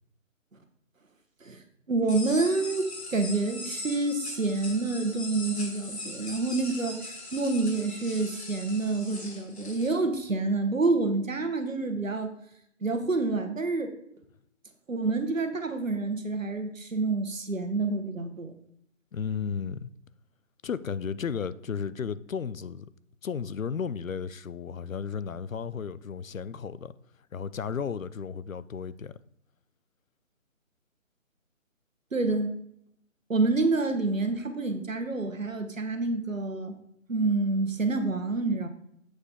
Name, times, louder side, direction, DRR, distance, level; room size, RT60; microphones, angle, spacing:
voice 1, 1.9-12.3 12.8-13.9 14.9-18.5 32.1-32.6 33.3-36.7 37.1-38.7, right 3 dB, 70° right, 1.3 m, -28 dB
sound 1, 2.1-9.9, left 2 dB, 50° left, 2.0 m, -40 dB
voice 2, 19.1-19.9 20.6-22.9 23.2-26.9 27.3-29.2, left 6 dB, 75° left, 0.6 m, -34 dB
7.8 x 6.6 x 3.5 m
figure-of-eight pair, 145°, 40 cm